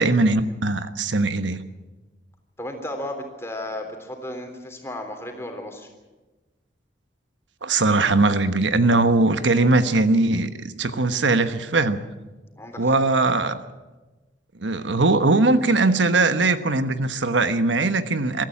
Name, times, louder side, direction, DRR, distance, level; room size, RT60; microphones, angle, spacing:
voice 1, 0.0-1.6 7.6-12.0 12.8-13.6 14.6-18.4, right 3 dB, 90° right, 10 dB, 1.2 m, -20 dB
voice 2, 2.6-5.9 12.6-13.0, left 1 dB, 15° left, 4 dB, 3.4 m, -34 dB
23.0 x 13.5 x 9.9 m, 1.2 s
head